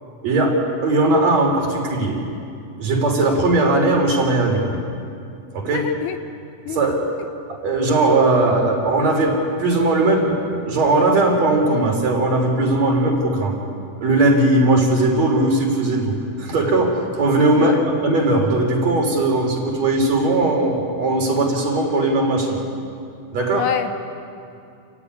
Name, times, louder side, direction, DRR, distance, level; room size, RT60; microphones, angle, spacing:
voice 1, 0.2-2.2 2.8-4.8 5.5-5.9 6.7-7.0 7.5-13.6 14.0-22.6 23.3-23.6, right 2 dB, 55° right, 1 dB, 4.7 m, -19 dB
voice 2, 5.7-6.2 6.7-6.9 17.6-17.9 23.5-23.9, left 9 dB, 75° left, 8 dB, 2.2 m, -26 dB
29.0 x 15.0 x 10.0 m, 2.5 s
omnidirectional pair, 3.8 m